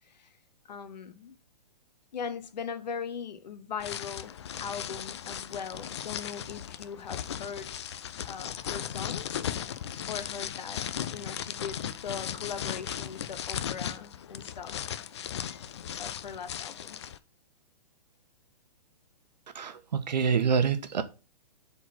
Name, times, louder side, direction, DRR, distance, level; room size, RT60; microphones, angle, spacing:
voice 1, 0.7-1.4 2.1-7.8 8.3-10.8 11.1-14.8 15.5-15.6 16.0-17.0, left 6 dB, 85° left, 0.9 m, -40 dB
sound 1, 3.8-17.2, left 9 dB, 40° left, 0.4 m, -37 dB
voice 2, 19.5-21.0, right 6 dB, 90° right, 1.0 m, -26 dB
4.7 x 4.0 x 5.6 m
hypercardioid pair, 170°, 21 cm